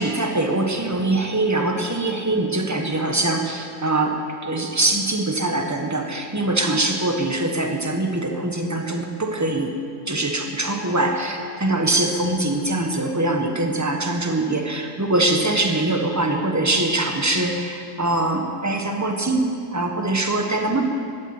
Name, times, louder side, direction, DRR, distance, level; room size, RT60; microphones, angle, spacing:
voice 1, 0.0-9.8 10.1-20.8, right 2 dB, 10° right, 3 dB, 1.1 m, -23 dB
13.0 x 12.0 x 8.9 m, 2.4 s
omnidirectional pair, 1.8 m